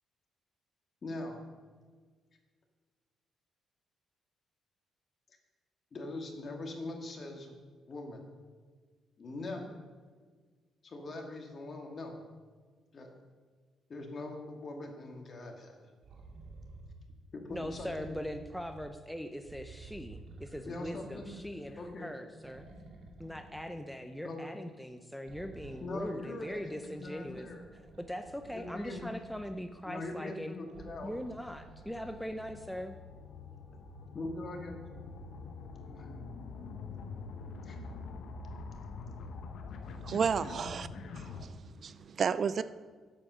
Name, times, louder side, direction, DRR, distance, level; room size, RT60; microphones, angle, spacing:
voice 1, 1.0-1.4 5.9-7.5 7.9-8.2 9.2-9.7 10.8-12.2 12.9-13.1 13.9-15.9 17.3-18.2 20.7-21.3 21.8-22.1 24.2-24.5 25.8-27.6 28.5-29.0 29.9-31.1 34.1-34.8 36.0-36.2 37.6-37.8 40.5-40.6 42.6-42.7, left 2 dB, 45° left, 3 dB, 1.8 m, -42 dB
sound 1, 16.0-17.0 17.5-19.0 19.4-22.0 22.4-24.0 25.2-29.7 30.6-32.6 33.5-33.6, right 3 dB, 65° right, 2.2 m, -52 dB
voice 2, 17.5-22.7 23.2-27.5 28.0-30.6 31.0-33.0, equal, ahead, 6 dB, 0.6 m, -41 dB
sound 2, 29.1-41.5, left 4 dB, 70° left, 1.1 m, -46 dB
voice 3, 40.0-40.9 41.3-41.5 41.8-42.6, right 6 dB, 50° right, 16 dB, 0.3 m, -31 dB
8.5 x 7.7 x 6.2 m, 1.5 s
cardioid pair, 90°, 0 cm